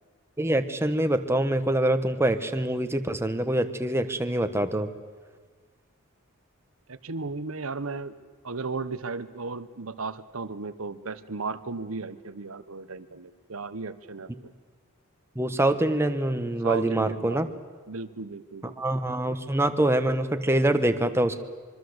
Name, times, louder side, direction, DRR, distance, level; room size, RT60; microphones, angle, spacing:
voice 1, 0.4-4.9 15.4-17.5 18.8-21.4, right 1 dB, 10° right, 8 dB, 1.2 m, -25 dB
voice 2, 6.9-8.1 8.4-14.5 16.6-17.4 17.9-18.7, right 4 dB, 70° right, 12 dB, 1.1 m, -35 dB
25.5 x 23.0 x 8.0 m, 1.6 s
head